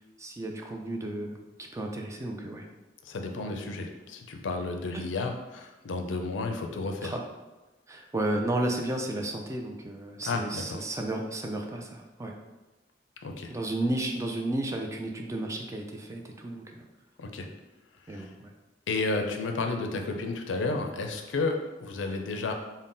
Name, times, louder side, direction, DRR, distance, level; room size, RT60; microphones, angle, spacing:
voice 1, 0.2-2.7 3.4-3.5 4.9-5.1 7.0-7.2 7.9-12.3 13.5-16.9 18.1-18.5, right 1 dB, 15° right, 2 dB, 0.4 m, -33 dB
voice 2, 3.1-7.1 10.2-10.8 13.2-13.5 17.2-17.5 18.1-18.3 18.9-22.5, left 3 dB, 85° left, 4 dB, 0.4 m, -32 dB
3.7 x 2.1 x 3.8 m, 1.1 s
head